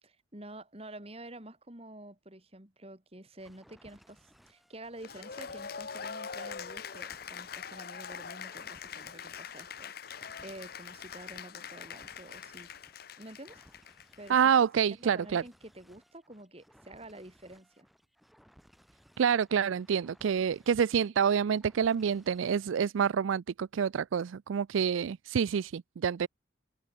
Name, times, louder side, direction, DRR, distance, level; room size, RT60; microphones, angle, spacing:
voice 1, 0.0-12.7 13.2-13.6 14.2-14.4 14.9-17.9, right 1 dB, 30° right, 3.2 m, -49 dB
sound 1, 3.4-22.8, equal, ahead, 5.6 m, -62 dB
Cheering / Applause, 5.0-14.6, left 6 dB, 50° left, 0.8 m, -43 dB
voice 2, 14.3-15.4 19.2-26.3, right 7 dB, 85° right, 0.4 m, -27 dB
open air
head